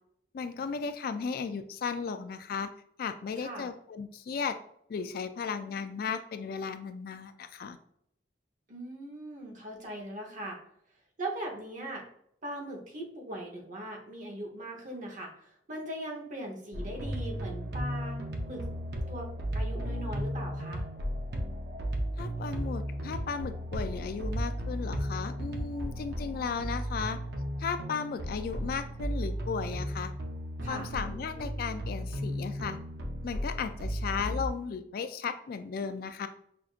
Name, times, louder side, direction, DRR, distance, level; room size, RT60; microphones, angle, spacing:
voice 1, 0.3-2.7 3.0-4.6 4.9-7.8 22.2-27.2 27.6-30.1 30.7-32.8 33.2-36.3, left 5 dB, 55° left, 10 dB, 0.3 m, -35 dB
voice 2, 3.4-3.7 8.7-10.6 11.2-12.0 12.4-18.2 18.4-18.6 19.1-19.3 19.5-20.8 30.6-30.9, right 1 dB, 45° right, 0 dB, 0.9 m, -40 dB
sound 1, 16.7-34.5, equal, 65° right, 0.6 m, -35 dB
5.6 x 2.5 x 2.4 m, 0.70 s
head